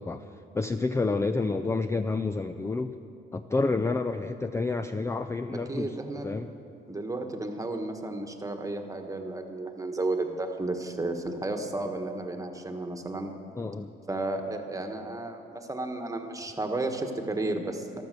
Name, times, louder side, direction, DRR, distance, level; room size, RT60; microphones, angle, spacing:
voice 1, 0.0-3.0 3.3-6.0 6.2-6.5 13.6-13.9, left 3 dB, 15° left, 9 dB, 0.4 m, -29 dB
voice 2, 5.7-6.3 6.9-13.3 14.1-18.0, right 2 dB, 15° right, 5 dB, 1.4 m, -33 dB
13.5 x 12.5 x 6.7 m, 2.7 s
cardioid pair, 90°, 20 cm